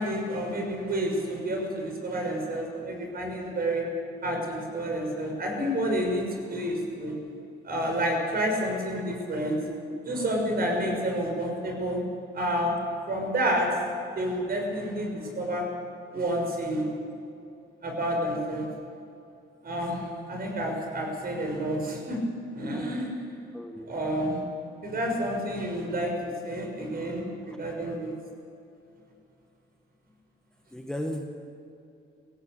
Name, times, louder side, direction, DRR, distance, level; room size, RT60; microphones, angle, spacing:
voice 1, 0.0-3.8 4.2-7.1 7.6-9.6 10.0-12.0 12.3-12.7 13.1-13.7 14.2-15.1 15.4-15.6 16.1-16.9 17.8-18.7 19.6-22.2 22.5-23.1 23.9-24.4 24.8-26.1 26.4-28.1, right 1 dB, 50° right, 1 dB, 6.6 m, -29 dB
voice 2, 23.5-23.9 30.7-31.3, equal, 5° left, 3 dB, 1.7 m, -34 dB
17.5 x 17.0 x 8.6 m, 2.7 s
cardioid pair, 90°, 20 cm